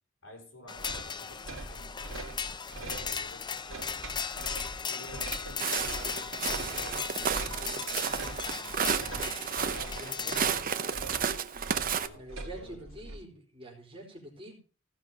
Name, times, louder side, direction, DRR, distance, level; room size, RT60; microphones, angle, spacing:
voice 1, 0.2-3.8 4.4-9.3 9.8-11.4 11.7-13.4, left 1 dB, 70° left, 2 dB, 4.3 m, -52 dB
sound 1, 0.7-10.6, left 6 dB, 20° left, 0.5 m, -37 dB
sound 2, 0.8-13.2, right 2 dB, 75° right, 1.6 m, -43 dB
Walk footsteps, 5.6-12.1, right 7 dB, 45° right, 0.7 m, -32 dB
voice 2, 10.0-10.9 12.1-14.5, right 1 dB, 25° right, -1 dB, 4.2 m, -46 dB
15.5 x 6.0 x 5.5 m, 0.38 s
head